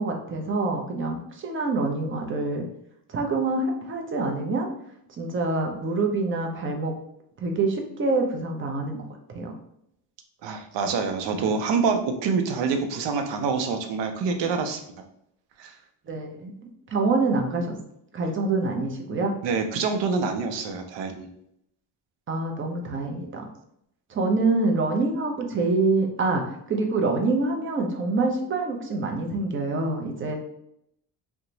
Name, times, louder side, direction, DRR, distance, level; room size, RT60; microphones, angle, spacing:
voice 1, 0.0-2.7 3.1-4.7 5.2-6.9 7.4-9.0 9.3-9.5 16.1-16.5 16.9-17.8 18.1-19.3 22.3-23.4 24.1-30.4, right 3 dB, 25° right, 2 dB, 0.7 m, -26 dB
voice 2, 10.4-14.8 15.6-15.8 19.4-21.3, right 5 dB, 70° right, 6 dB, 0.7 m, -26 dB
2.8 x 2.3 x 3.9 m, 0.75 s
cardioid pair, 100°, 45 cm